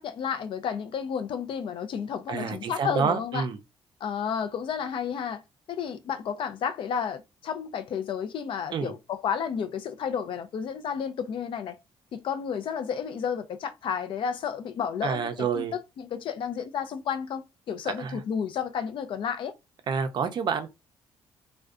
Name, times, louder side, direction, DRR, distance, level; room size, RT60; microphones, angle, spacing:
voice 1, 0.0-3.4 4.0-5.4 5.7-11.8 12.1-19.5, left 7 dB, 60° left, 0.4 m, -32 dB
voice 2, 2.3-3.6 8.7-8.9 15.0-15.7 18.0-18.2 19.9-20.7, right 6 dB, 50° right, 0.4 m, -28 dB
2.4 x 2.1 x 2.4 m
cardioid pair, 95°, 10 cm